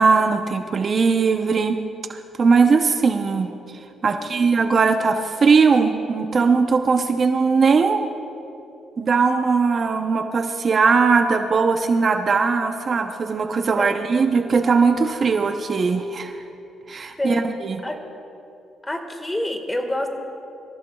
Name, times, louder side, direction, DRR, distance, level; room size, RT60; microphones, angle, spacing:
voice 1, 0.0-1.8 2.1-8.0 9.0-16.4 16.9-17.8, right 5 dB, 45° right, 6 dB, 0.7 m, -19 dB
voice 2, 4.1-4.8 13.8-14.0 17.2-17.5 17.8-18.0 18.8-20.1, left 1 dB, 15° left, 5 dB, 1.7 m, -28 dB
26.0 x 15.0 x 2.4 m, 2.7 s
cardioid pair, 90°, 0 cm